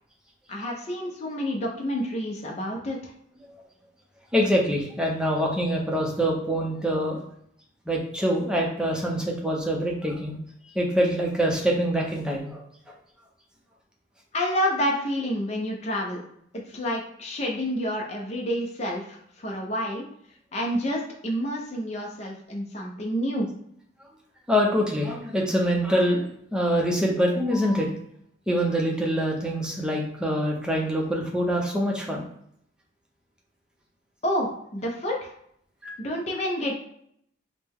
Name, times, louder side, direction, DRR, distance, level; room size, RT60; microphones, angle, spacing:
voice 1, 0.5-3.1 14.3-16.2 16.7-20.1 20.5-23.5 34.2-35.3 36.0-36.8, equal, 35° left, -1 dB, 0.6 m, -29 dB
voice 2, 4.3-7.2 7.9-10.4 10.8-12.6 24.5-26.3 26.5-27.9 28.5-32.2 35.8-36.0, equal, 5° right, -1 dB, 0.6 m, -25 dB
4.9 x 2.1 x 3.5 m, 0.69 s
head